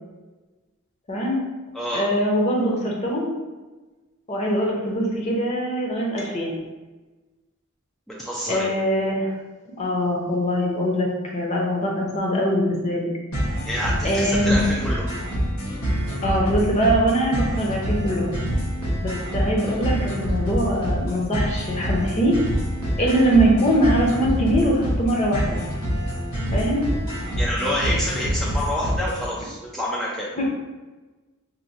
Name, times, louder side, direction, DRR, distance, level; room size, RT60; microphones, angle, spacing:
voice 1, 1.1-1.4 1.9-3.3 4.3-6.6 8.5-9.3 9.8-13.1 14.0-14.5 16.2-18.4 19.0-22.4 23.0-25.6 26.5-26.9 30.4-30.5, equal, 30° left, -2 dB, 0.7 m, -22 dB
voice 2, 8.1-8.7 13.7-15.0 27.4-30.3, equal, ahead, -6 dB, 0.4 m, -27 dB
sound 1, 13.3-29.3, equal, 85° left, 1.3 m, -26 dB
4.4 x 2.2 x 2.7 m, 1.2 s
head